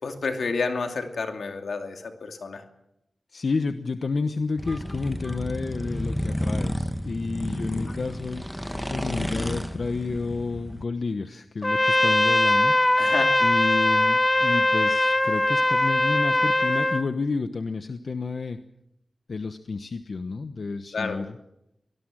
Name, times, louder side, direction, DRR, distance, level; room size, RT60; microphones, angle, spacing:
voice 1, 0.0-2.6 13.0-13.4 20.9-21.2, left 4 dB, 90° left, 5 dB, 2.6 m, -30 dB
voice 2, 3.3-12.7 13.4-18.6 19.3-21.4, left 4 dB, 70° left, 9 dB, 1.1 m, -30 dB
sound 1, 4.6-10.8, equal, 5° left, 1.4 m, -31 dB
Trumpet, 11.6-17.0, left 1 dB, 20° left, 1.3 m, -21 dB
24.5 x 19.5 x 7.6 m, 0.84 s
wide cardioid pair, 65°, 0 cm